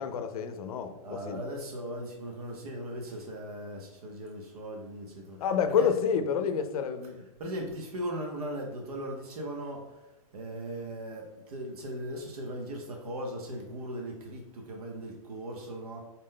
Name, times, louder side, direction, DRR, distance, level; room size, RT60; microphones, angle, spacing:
voice 1, 0.0-1.4 5.4-7.3, left 7 dB, 80° left, 9 dB, 0.5 m, -29 dB
voice 2, 1.0-5.4 5.7-5.9 7.4-9.8 10.3-16.0, right 1 dB, 85° right, 1 dB, 0.8 m, -38 dB
4.0 x 2.1 x 3.7 m, 0.98 s
supercardioid pair, 170°, 19 cm